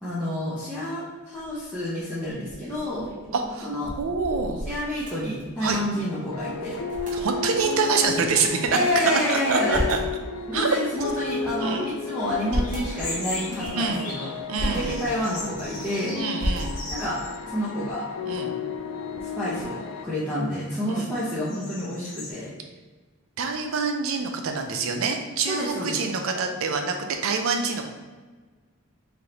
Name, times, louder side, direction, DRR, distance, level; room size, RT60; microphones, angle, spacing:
voice 1, 0.0-3.1 3.6-3.9 4.6-6.8 8.7-9.8 10.5-14.3 14.6-16.1 16.9-17.2 17.5-18.0 19.2-22.5 25.5-26.0, left 1 dB, 5° left, -11 dB, 0.7 m, -29 dB
sound 1, 1.4-1.7 2.2-6.0 6.3-6.4 6.6-7.2 7.9-8.9 9.4-10.1 10.7-11.7 12.2-12.9 13.4-13.9 14.4-14.8 15.3-15.9 16.4-17.1, equal, 35° right, 0.9 m, -34 dB
voice 2, 3.3-3.7 4.0-4.6 5.6-5.8 7.1-8.8 9.1-10.0 10.5-10.8 11.6-11.9 13.7-14.1 14.5-15.0 16.1-16.8 18.3-18.5 20.9-21.1 23.4-27.9, right 4 dB, 70° right, 4 dB, 0.5 m, -26 dB
sound 2, 6.3-20.0, left 4 dB, 70° left, 0.4 m, -34 dB
sound 3, 12.6-14.4 14.7-17.4 17.8-17.9 18.6-19.0 19.5-22.3, left 2 dB, 40° left, 1.0 m, -39 dB
3.8 x 3.3 x 2.9 m, 1.4 s
head